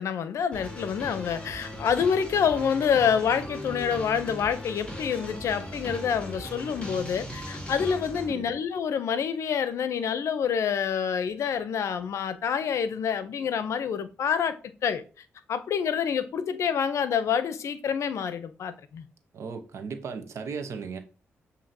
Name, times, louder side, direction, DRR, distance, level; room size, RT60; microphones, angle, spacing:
voice 1, 0.0-14.6 14.8-15.0 15.5-19.0, left 7 dB, 75° left, 0.5 m, -27 dB
sound 1, 0.5-8.3, equal, 20° left, 2.5 m, -38 dB
voice 2, 19.3-21.0, right 5 dB, 70° right, 0.8 m, -36 dB
7.3 x 2.8 x 2.6 m
cardioid pair, 75°, 5 cm